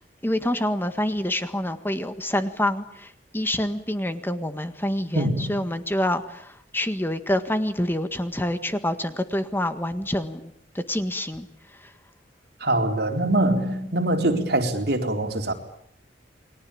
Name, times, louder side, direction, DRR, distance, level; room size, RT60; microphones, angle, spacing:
voice 1, 0.2-11.5 11.8-11.9, left 1 dB, 10° left, 1.7 m, -27 dB
voice 2, 5.1-5.6 12.6-15.5, right 1 dB, 65° right, 4.2 m, -23 dB
29.5 x 22.0 x 8.7 m
head